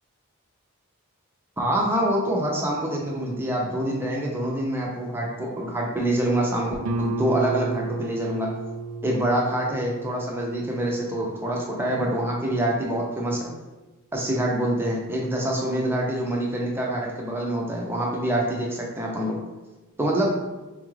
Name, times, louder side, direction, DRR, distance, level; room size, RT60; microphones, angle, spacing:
voice 1, 1.6-8.5 9.0-13.5 14.1-19.4 20.0-20.3, right 1 dB, 10° right, -2 dB, 0.6 m, -26 dB
Guitar, 6.8-12.3, right 3 dB, 80° right, 0.4 m, -33 dB
4.9 x 2.4 x 3.1 m, 1.1 s
head